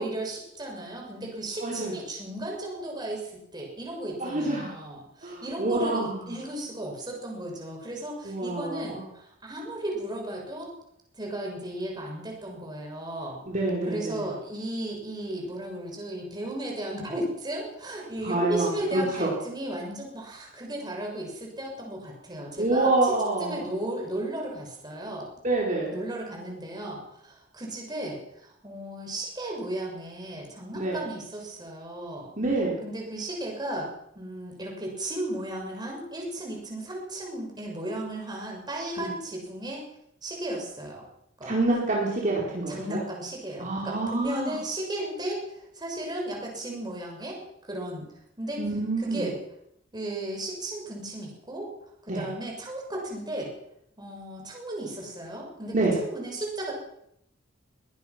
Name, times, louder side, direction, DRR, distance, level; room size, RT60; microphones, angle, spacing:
voice 1, 0.0-10.7 11.2-13.4 13.9-23.1 23.4-25.3 25.9-32.3 32.8-33.9 34.1-39.8 40.2-41.0 41.4-41.5 42.7-45.5 45.7-48.1 48.4-48.6 49.0-49.4 49.9-51.7 52.0-53.5 54.0-56.7, right 1 dB, 20° right, 0 dB, 6.7 m, -35 dB
voice 2, 1.6-1.9 4.2-4.8 5.2-6.3 8.2-9.0 13.5-14.2 18.2-19.3 22.6-23.7 25.4-25.9 30.8-31.0 32.4-32.7 39.0-39.1 41.4-43.0 43.6-44.6 48.6-49.3 52.1-52.2 55.7-55.9, right 2 dB, 45° right, -3 dB, 4.6 m, -27 dB
22.0 x 19.5 x 6.1 m, 0.74 s
head